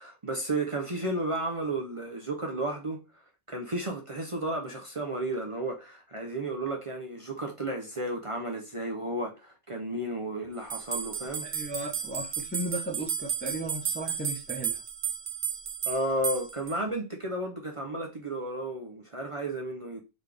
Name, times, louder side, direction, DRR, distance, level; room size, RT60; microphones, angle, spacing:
voice 1, 0.0-3.0 3.5-11.5 15.9-20.0, right 1 dB, 30° right, 0.8 m, -33 dB
sound 1, 10.7-16.8, right 8 dB, 60° right, 0.9 m, -33 dB
voice 2, 11.4-14.8, right 1 dB, 10° left, 0.7 m, -36 dB
4.0 x 3.5 x 3.4 m
omnidirectional pair, 1.1 m